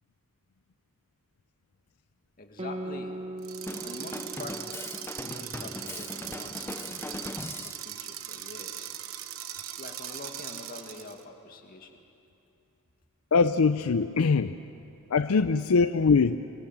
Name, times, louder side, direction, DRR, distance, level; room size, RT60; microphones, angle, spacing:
voice 1, 2.4-3.2 3.8-4.9 5.2-8.9 9.7-11.9, left 2 dB, 40° left, 3 dB, 2.2 m, -45 dB
Guitar, 2.6-7.5, right 1 dB, 30° right, 0.8 m, -41 dB
sound 1, 3.4-11.2, right 11 dB, 65° right, 1.1 m, -40 dB
Drum kit, 3.7-7.8, left 2 dB, 10° left, 0.5 m, -40 dB
voice 2, 13.3-14.6 15.1-16.5, left 4 dB, 80° left, 11 dB, 0.5 m, -22 dB
26.5 x 23.0 x 7.4 m, 2.8 s
head